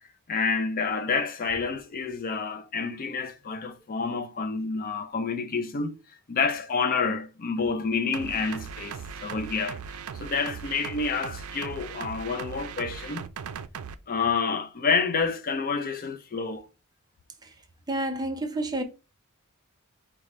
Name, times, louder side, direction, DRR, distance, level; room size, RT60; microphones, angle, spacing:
voice 1, 0.3-6.0 6.3-13.3 14.1-16.7, left 4 dB, 40° left, 0.4 m, -29 dB
sound 1, 8.1-14.0, right 7 dB, 80° right, 0.4 m, -38 dB
voice 2, 17.9-18.8, right 1 dB, 20° right, 0.6 m, -29 dB
4.9 x 2.2 x 4.1 m
head